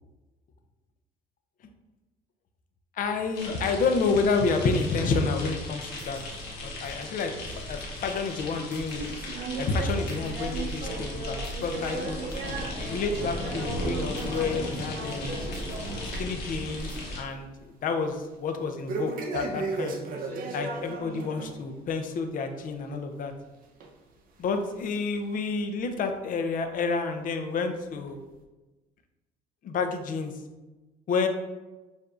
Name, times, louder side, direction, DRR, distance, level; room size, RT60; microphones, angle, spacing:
voice 1, 3.0-6.2 6.6-9.0 9.6-12.2 12.9-15.4 16.2-17.5 17.8-20.0 20.5-23.3 24.4-28.2 29.6-30.3 31.1-31.3, left 4 dB, 55° left, 6 dB, 0.6 m, -29 dB
sound 1, 3.3-17.2, left 2 dB, 80° left, 1.0 m, -37 dB
sound 2, 4.7-17.0, right 1 dB, 25° right, 0.9 m, -47 dB
sound 3, 8.9-16.4 16.7-17.1 17.4-17.5 18.9-21.6 22.0-22.1 22.8-22.9 23.8-23.9 24.7-24.8, right 3 dB, 55° right, 0.6 m, -36 dB
6.7 x 2.6 x 2.5 m, 1.1 s
cardioid pair, 110°, 17 cm